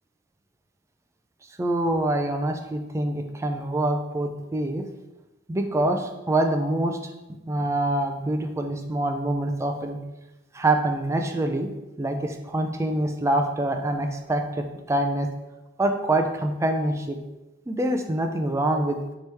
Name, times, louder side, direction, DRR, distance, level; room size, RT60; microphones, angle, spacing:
voice 1, 1.6-4.8 5.5-7.1 7.5-10.0 10.5-11.7 12.0-15.3 15.8-17.2 17.7-19.0, right 1 dB, 15° right, 5 dB, 0.3 m, -25 dB
4.5 x 3.0 x 3.3 m, 1.0 s
head